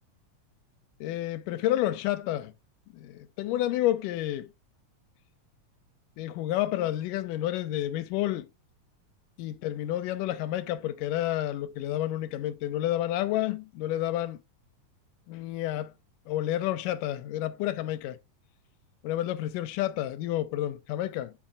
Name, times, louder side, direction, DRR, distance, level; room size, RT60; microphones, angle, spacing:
voice 1, 1.0-2.5 2.9-4.5 6.2-8.5 9.4-14.4 15.3-15.9 16.3-18.2 19.0-21.3, left 13 dB, 80° left, 2.3 m, -30 dB
8.7 x 7.2 x 2.3 m
omnidirectional pair, 3.9 m